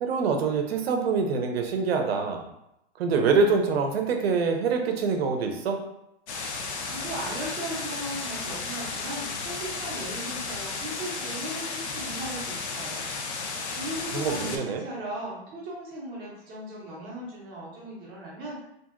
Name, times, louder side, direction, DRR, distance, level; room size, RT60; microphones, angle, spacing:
voice 1, 0.0-2.5 3.0-5.8 14.1-14.8, right 5 dB, 65° right, 4 dB, 0.6 m, -25 dB
sound 1, 6.3-14.6, left 4 dB, 85° left, 0.7 m, -34 dB
voice 2, 6.9-13.1 13.3-18.6, right 1 dB, 15° right, -5 dB, 0.5 m, -37 dB
2.7 x 2.6 x 2.4 m, 0.83 s
hypercardioid pair, 160°, 33 cm